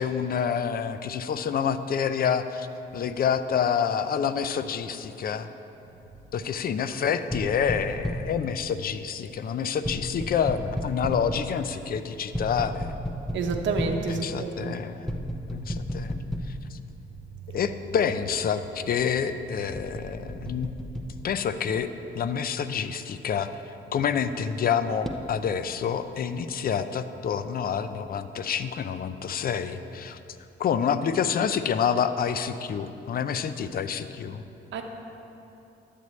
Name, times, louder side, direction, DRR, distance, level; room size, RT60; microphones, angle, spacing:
voice 1, 0.0-2.7 2.9-5.5 6.3-12.9 14.1-15.1 15.5-16.1 16.7-16.8 17.5-20.7 21.2-21.9 22.1-23.5 23.9-30.2 30.6-34.4, left 7 dB, 50° left, 11 dB, 0.5 m, -28 dB
sound 1, 7.3-8.4 9.8-11.6 12.3-14.1 15.1-16.7 17.3-17.4 19.7-21.1 25.0-25.2, equal, ahead, 0.7 m, -33 dB
voice 2, 13.3-14.7 34.7-34.8, right 4 dB, 70° right, 3 dB, 0.8 m, -29 dB
12.0 x 8.3 x 3.2 m, 2.9 s
cardioid pair, 90°, 20 cm